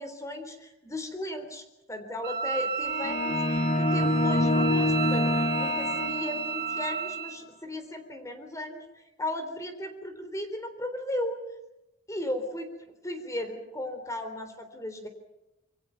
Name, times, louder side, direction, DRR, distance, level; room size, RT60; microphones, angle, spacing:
voice 1, 0.0-1.6 1.9-5.3 5.6-11.4 12.1-15.1, left 1 dB, 15° left, 6 dB, 3.6 m, -36 dB
Wind instrument woodwind instrument, 2.2-7.4, right 6 dB, 45° right, 7.5 m, -32 dB
sound 1, 2.8-6.8, left 1 dB, 30° left, 1.1 m, -26 dB
27.0 x 24.5 x 5.9 m, 0.94 s
head